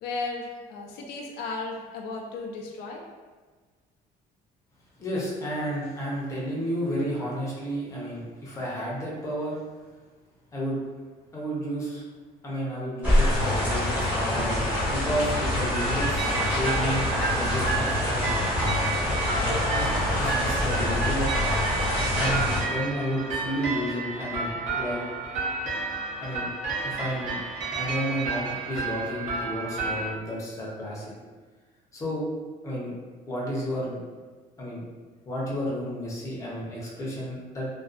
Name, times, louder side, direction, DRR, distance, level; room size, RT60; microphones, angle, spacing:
voice 1, 0.0-3.0, left 3 dB, 85° left, 0 dB, 0.4 m, -35 dB
voice 2, 5.0-9.5 10.5-10.8 11.3-12.0 12.4-18.4 19.7-19.9 20.2-21.3 22.1-25.0 26.2-26.5 26.8-27.4 27.7-31.1 31.9-32.2 32.6-32.9 33.3-34.0 34.6-34.8 35.3-37.7, equal, 20° left, -6 dB, 0.6 m, -31 dB
sound 1, 13.0-22.6, left 1 dB, 10° right, 0.8 m, -25 dB
sound 2, 15.7-30.1, right 4 dB, 50° right, 0.8 m, -31 dB
2.5 x 2.3 x 2.4 m, 1.4 s
cardioid pair, 170°, 16 cm